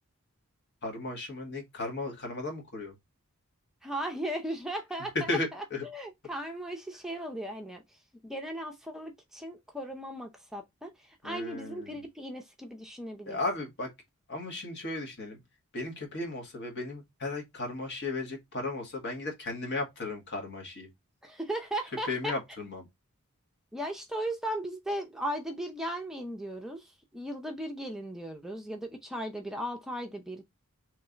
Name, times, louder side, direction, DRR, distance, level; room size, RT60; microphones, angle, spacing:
voice 1, 0.8-3.0 5.3-5.8 11.2-11.9 13.3-13.9 14.3-15.4 15.7-20.9 22.0-22.9, left 2 dB, 50° left, 1.5 m, -35 dB
voice 2, 3.8-7.8 8.2-13.4 21.2-22.3 23.7-30.4, right 1 dB, ahead, 0.5 m, -37 dB
3.3 x 3.2 x 3.8 m
head